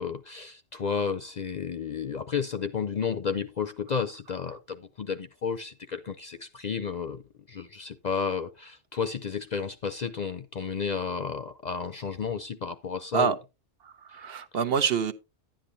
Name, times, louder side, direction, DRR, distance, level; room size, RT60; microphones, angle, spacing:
voice 1, 0.0-7.2 7.5-13.4, left 6 dB, 50° left, 0.5 m, -32 dB
voice 2, 13.8-15.1, right 6 dB, 65° right, 0.9 m, -26 dB
10.5 x 10.0 x 2.7 m
omnidirectional pair, 1.2 m